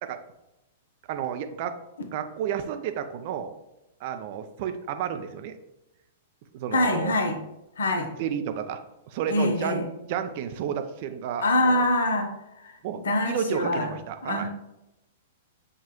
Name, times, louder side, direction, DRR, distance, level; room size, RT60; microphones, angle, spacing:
voice 1, 1.1-1.8 2.1-3.5 4.0-5.5 6.5-7.1 8.2-8.8 9.1-9.8 10.1-11.9 12.8-13.0 13.2-14.5, right 8 dB, 45° right, 8 dB, 0.4 m, -31 dB
voice 2, 6.7-7.4 7.8-8.1 9.3-9.9 11.4-13.9 14.2-14.5, left 1 dB, 70° left, 5 dB, 0.6 m, -25 dB
5.7 x 2.3 x 3.0 m, 0.91 s
figure-of-eight pair, 105°, 0 cm